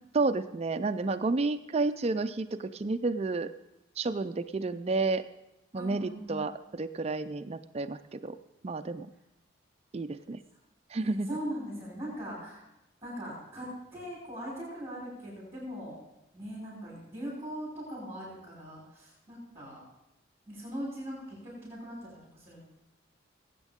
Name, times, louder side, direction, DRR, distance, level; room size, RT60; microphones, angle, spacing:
voice 1, 0.1-3.5 4.0-5.2 5.7-8.3 8.6-9.1 9.9-10.4 10.9-11.3, right 3 dB, 30° right, 11 dB, 0.4 m, -31 dB
voice 2, 5.7-6.4 11.0-12.7 13.0-16.0 16.3-19.8 20.5-22.6, equal, 10° right, -10 dB, 5.5 m, -40 dB
19.0 x 9.0 x 3.6 m, 0.90 s
head